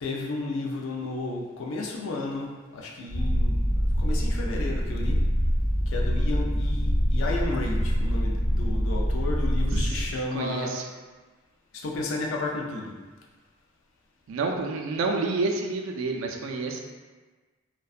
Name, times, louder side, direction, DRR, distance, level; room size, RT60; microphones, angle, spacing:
voice 1, 0.0-3.6 3.9-5.2 5.9-10.8 11.7-13.0, left 2 dB, 70° left, -1 dB, 0.4 m, -32 dB
Purr, 3.1-10.1, equal, 30° left, 0.9 m, -25 dB
voice 2, 10.3-10.9 14.3-16.8, right 3 dB, 80° right, 2 dB, 0.3 m, -29 dB
2.6 x 2.1 x 2.3 m, 1.3 s
head